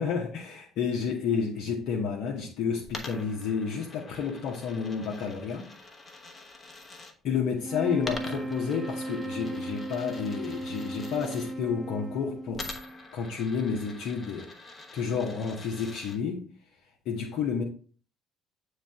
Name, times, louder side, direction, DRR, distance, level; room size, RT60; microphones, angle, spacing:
voice 1, 0.0-5.7 7.2-12.8 13.1-14.5 14.9-16.5 17.1-17.6, left 6 dB, 55° left, 0.9 m, -30 dB
Coin (dropping), 2.8-7.1 8.0-11.5 12.5-16.2, left 2 dB, 25° left, 1.1 m, -45 dB
sound 1, 7.6-13.0, right 1 dB, 5° right, 0.6 m, -36 dB
8.6 x 3.2 x 3.4 m
figure-of-eight pair, 55°, 0 cm